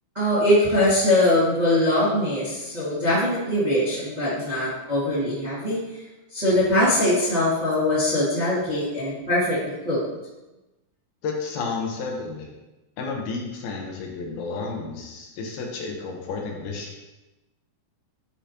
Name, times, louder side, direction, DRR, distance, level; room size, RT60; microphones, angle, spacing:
voice 1, 0.1-5.8 6.3-10.0, left 1 dB, 15° right, -10 dB, 1.7 m, -22 dB
voice 2, 11.2-12.5 13.0-16.9, left 4 dB, 90° left, 0 dB, 3.0 m, -31 dB
9.4 x 5.1 x 2.9 m, 1.0 s
omnidirectional pair, 4.2 m